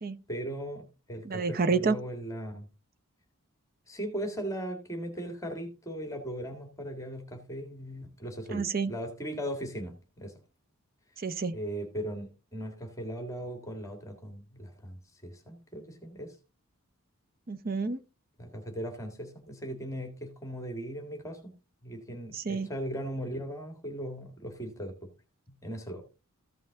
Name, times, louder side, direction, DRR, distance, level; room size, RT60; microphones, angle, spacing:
voice 1, 0.3-2.7 3.9-10.3 11.5-16.4 18.4-21.5 21.8-25.1 25.6-26.0, equal, 15° left, 1.8 m, -38 dB
voice 2, 1.2-2.0 8.5-8.9 11.2-11.6 17.5-18.0 22.3-22.7, right 4 dB, 40° right, 0.7 m, -29 dB
14.5 x 5.5 x 3.7 m
head